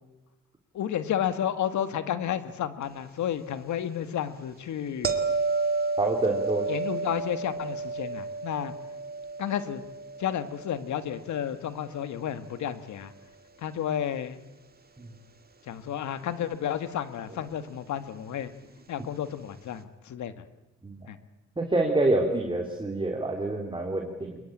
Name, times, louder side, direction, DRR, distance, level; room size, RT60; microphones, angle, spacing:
voice 1, 0.7-5.1 6.7-8.7 9.4-9.8 10.2-13.1 13.6-14.4 15.7-18.5 18.9-20.3 21.1-21.2, left 10 dB, 70° left, 11 dB, 1.9 m, -31 dB
sound 1, 5.0-12.0 17.3-17.5, right 3 dB, 30° right, 2.3 m, -32 dB
voice 2, 6.0-6.7 15.0-15.1 20.8-21.0 21.6-24.4, right 2 dB, 15° right, 2 dB, 3.4 m, -27 dB
24.5 x 22.0 x 8.8 m, 1.0 s
cardioid pair, 90°, 30 cm